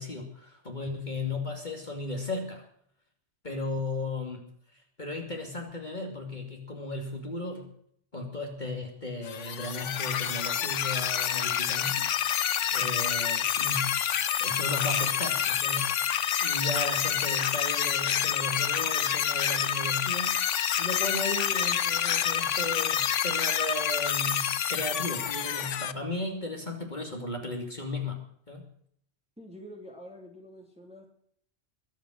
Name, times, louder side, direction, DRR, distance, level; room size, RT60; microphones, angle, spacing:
voice 1, 0.0-2.6 3.4-4.5 5.0-7.7 8.1-20.4 20.8-28.2 28.5-28.7, left 2 dB, 40° left, 2 dB, 2.8 m, -35 dB
sound 1, 9.2-25.9, left 9 dB, 75° left, 1.1 m, -28 dB
voice 2, 29.4-31.1, equal, 5° right, -1 dB, 2.8 m, -47 dB
22.5 x 9.3 x 6.4 m, 0.65 s
omnidirectional pair, 1.3 m